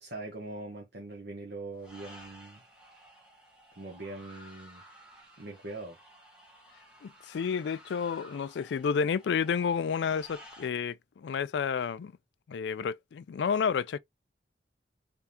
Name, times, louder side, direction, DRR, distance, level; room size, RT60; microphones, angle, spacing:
voice 1, 0.0-2.6 3.8-4.8 5.4-6.0, right 2 dB, 65° right, 1.0 m, -42 dB
sound 1, 1.8-10.7, equal, 5° right, 1.1 m, -54 dB
voice 2, 7.0-12.1 12.5-14.0, left 6 dB, 75° left, 0.3 m, -30 dB
3.6 x 3.5 x 2.8 m
head